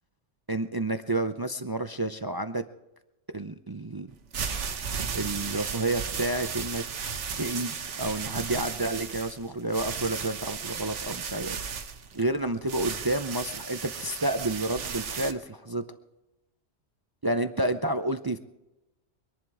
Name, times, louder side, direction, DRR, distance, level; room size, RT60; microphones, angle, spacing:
voice 1, 0.5-2.6 3.3-4.1 5.1-6.8 7.4-11.6 12.1-15.8 17.2-18.4, right 2 dB, 30° right, 9 dB, 0.4 m, -30 dB
sound 1, 4.1-15.3, right 6 dB, 70° right, 1.3 m, -35 dB
24.0 x 11.0 x 4.8 m, 0.95 s
omnidirectional pair, 1.3 m